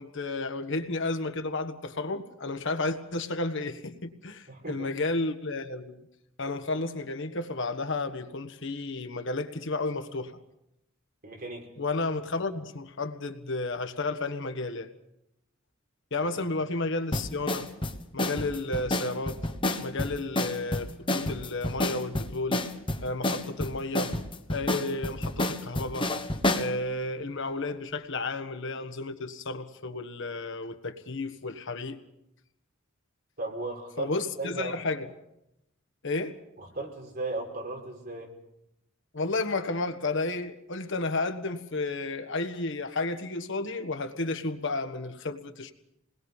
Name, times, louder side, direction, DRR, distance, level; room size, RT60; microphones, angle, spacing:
voice 1, 0.0-6.0 6.4-10.4 11.8-14.9 16.1-17.7 18.1-19.4 19.8-22.6 23.0-24.1 24.5-26.1 26.5-32.0 34.0-35.1 36.0-36.4 39.1-45.7, left 2 dB, 65° left, 1.5 m, -32 dB
voice 2, 4.5-4.9 11.2-11.7 33.4-34.8 36.6-38.3, right 2 dB, 50° right, 5.1 m, -36 dB
sound 1, 17.1-26.7, left 1 dB, 25° left, 1.2 m, -29 dB
28.0 x 20.5 x 5.5 m
head